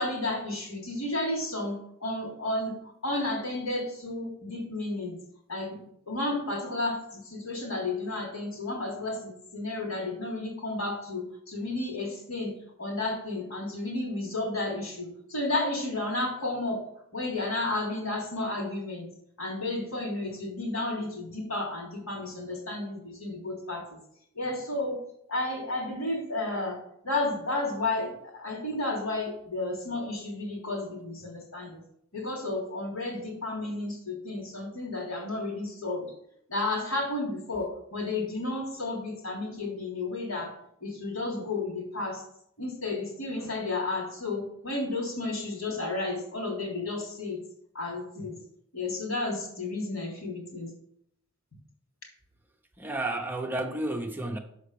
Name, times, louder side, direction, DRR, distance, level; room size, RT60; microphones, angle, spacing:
voice 1, 0.0-2.8 3.0-5.2 5.5-12.5 12.8-16.8 17.1-19.1 19.4-24.0 24.3-25.0 25.3-31.8 32.1-36.1 36.5-40.5 40.8-42.2 42.6-47.4 47.7-48.4 48.7-50.7, left 2 dB, 80° left, 3.5 m, -32 dB
voice 2, 52.8-54.4, right 2 dB, 10° right, 0.7 m, -32 dB
6.4 x 5.2 x 6.7 m
head